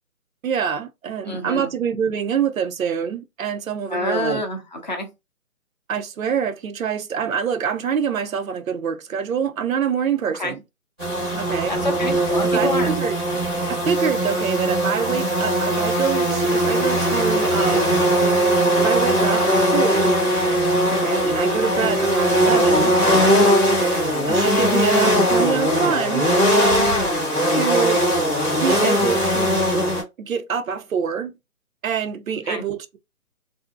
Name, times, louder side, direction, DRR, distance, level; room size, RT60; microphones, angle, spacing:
voice 1, 0.4-4.4 5.9-10.6 11.4-11.7 12.5-13.2 13.7-18.0 18.8-20.1 20.9-23.0 24.3-26.3 27.5-28.0 28.6-29.7 30.2-31.4 31.8-33.0, right 7 dB, 70° right, 0.6 m, -25 dB
voice 2, 1.2-1.7 3.9-5.1 10.3-10.5 11.7-12.9 23.6-24.0 32.4-32.6, left 2 dB, 35° left, 0.6 m, -28 dB
sound 1, 11.0-30.0, equal, 5° right, 0.7 m, -19 dB
2.6 x 2.1 x 2.4 m
figure-of-eight pair, 145°, 43 cm